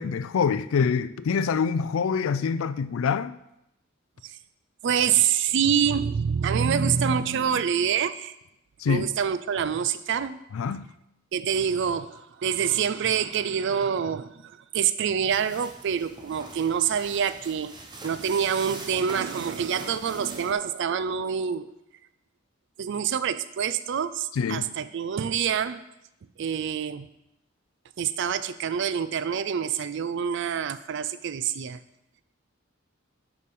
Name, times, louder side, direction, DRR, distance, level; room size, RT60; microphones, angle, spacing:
voice 1, 0.0-3.4 8.8-9.1 10.5-10.9 24.3-24.7, left 6 dB, 85° left, 0.4 m, -25 dB
voice 2, 4.8-8.3 8.9-10.4 11.3-17.7 18.0-21.7 22.8-25.8 26.4-27.1 28.0-31.8, right 7 dB, 60° right, 0.4 m, -26 dB
sound 1, 15.3-20.5, right 2 dB, 20° right, 0.9 m, -43 dB
6.7 x 5.0 x 5.4 m
head